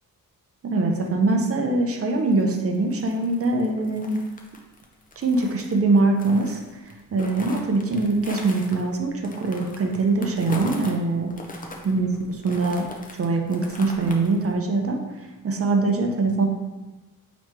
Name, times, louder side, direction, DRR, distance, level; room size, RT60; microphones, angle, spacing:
voice 1, 0.7-4.2 5.2-6.6 7.1-11.3 11.8-12.9 13.2-15.0 15.4-16.4, right 3 dB, 40° right, 2 dB, 0.6 m, -23 dB
sound 1, 2.1-11.0 11.3-14.5, left 2 dB, 25° left, 0.5 m, -40 dB
4.4 x 3.0 x 3.3 m, 1.1 s
wide cardioid pair, 110°, 35 cm